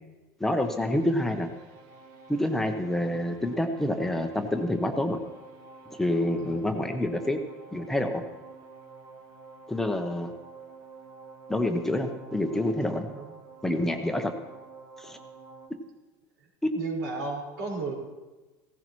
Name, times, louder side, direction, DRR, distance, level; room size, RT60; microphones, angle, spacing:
voice 1, 0.4-1.5 2.3-5.2 5.9-7.4 7.7-8.2 9.7-10.3 11.5-13.1 13.6-14.3 15.0-15.2 16.6-16.7, left 1 dB, 5° left, 4 dB, 0.8 m, -27 dB
sound 1, 0.6-15.7, right 4 dB, 50° right, 1.3 m, -49 dB
voice 2, 6.4-6.8 13.0-13.4 13.7-14.1 16.4-17.9, right 3 dB, 90° right, -3 dB, 4.8 m, -36 dB
16.5 x 15.0 x 3.1 m, 1.2 s
supercardioid pair, 145°, 9 cm